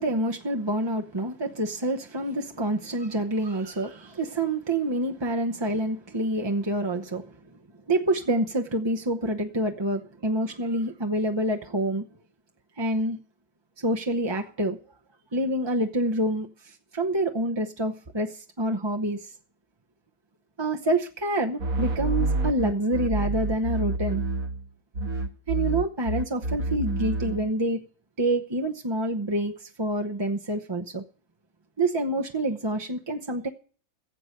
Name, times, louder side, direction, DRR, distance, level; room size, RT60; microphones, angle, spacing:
voice 1, 0.0-7.3 7.9-12.0 12.8-13.2 13.8-14.8 15.3-19.3 20.6-24.2 25.5-27.8 28.2-31.0 31.8-33.5, right 1 dB, 25° right, 0.7 m, -27 dB
sound 1, 21.6-24.7 24.9-27.5, right 2 dB, 75° right, 1.8 m, -28 dB
15.5 x 7.8 x 6.6 m
omnidirectional pair, 1.5 m